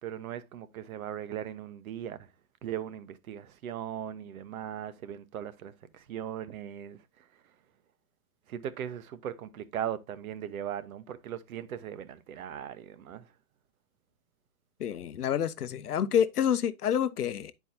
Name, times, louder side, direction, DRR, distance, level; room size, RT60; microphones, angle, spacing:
voice 1, 0.0-2.2 2.6-7.0 8.5-13.2, right 10 dB, 65° right, 0.9 m, -38 dB
voice 2, 14.8-17.5, left 9 dB, 90° left, 0.7 m, -28 dB
9.8 x 4.6 x 2.7 m
hypercardioid pair, 130°, 45 cm